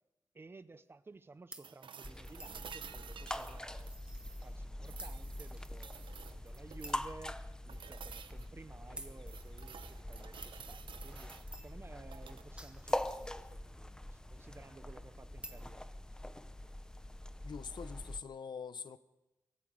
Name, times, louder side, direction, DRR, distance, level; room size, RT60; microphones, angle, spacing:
voice 1, 0.3-3.9 4.2-7.4 7.7-11.4 11.6-15.9, right 3 dB, 30° right, 0.9 m, -55 dB
sound 1, 1.5-1.7 2.4-2.6 3.4-4.7 5.0-5.2 5.6-5.7 6.1-6.2 6.8-7.1 7.7-7.8 9.0-9.2 10.4-10.5 11.5-11.8 12.3-13.7 15.4-15.7, right 1 dB, 10° right, 1.6 m, -51 dB
sound 2, 1.6-4.5 4.8-7.1 7.7-8.5 8.9-11.5 12.0-12.5 14.5-14.6, right 7 dB, 90° right, 1.0 m, -52 dB
sound 3, 2.0-18.2, left 1 dB, 10° left, 0.8 m, -44 dB
voice 2, 17.4-19.0, left 6 dB, 65° left, 1.0 m, -44 dB
23.0 x 16.5 x 8.8 m
wide cardioid pair, 165°, 8 cm